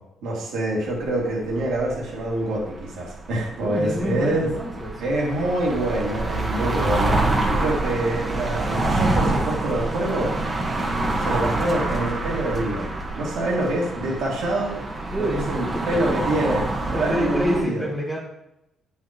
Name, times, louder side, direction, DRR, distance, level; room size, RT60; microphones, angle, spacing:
voice 1, 0.2-4.5 5.0-10.3 11.2-14.8 15.1-17.8, right 1 dB, 80° right, -3 dB, 2.4 m, -26 dB
sound 1, 1.0-17.6, right 2 dB, 30° right, 1.5 m, -27 dB
voice 2, 3.6-4.9 15.1-16.2 16.9-18.2, equal, 5° right, -6 dB, 1.5 m, -28 dB
8.7 x 5.8 x 3.1 m, 0.84 s
cardioid pair, 90°, 0 cm